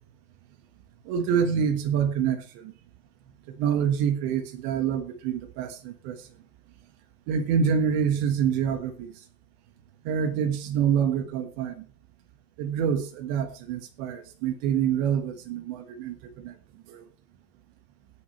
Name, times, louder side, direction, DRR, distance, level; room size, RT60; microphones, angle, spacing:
voice 1, 1.1-2.7 3.6-6.2 7.3-9.1 10.1-11.9 12.6-16.6 16.9-17.0, right 7 dB, 80° right, 8 dB, 3.7 m, -26 dB
18.0 x 8.6 x 3.3 m, 0.36 s
omnidirectional pair, 5.1 m